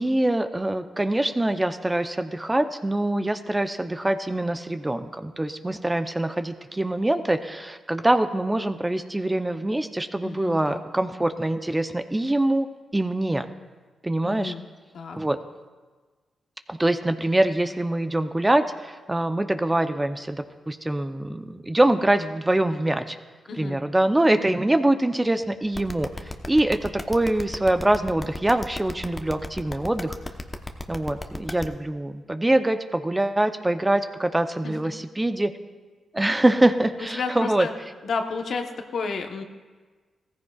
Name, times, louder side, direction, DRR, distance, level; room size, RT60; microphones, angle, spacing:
voice 1, 0.0-12.7 12.9-13.5 14.0-14.5 15.2-15.4 16.7-23.2 23.5-26.1 26.5-30.2 30.9-35.5 36.1-37.7, right 1 dB, 15° right, 8 dB, 0.7 m, -24 dB
voice 2, 10.2-10.8 14.2-14.6 14.9-15.2 23.5-23.8 34.6-34.7 37.1-37.7 38.0-39.4, left 4 dB, 70° left, 4 dB, 1.1 m, -31 dB
sound 1, 25.7-31.6, left 2 dB, 20° left, 1.0 m, -33 dB
16.5 x 14.5 x 2.4 m, 1.4 s
cardioid pair, 60°, 0 cm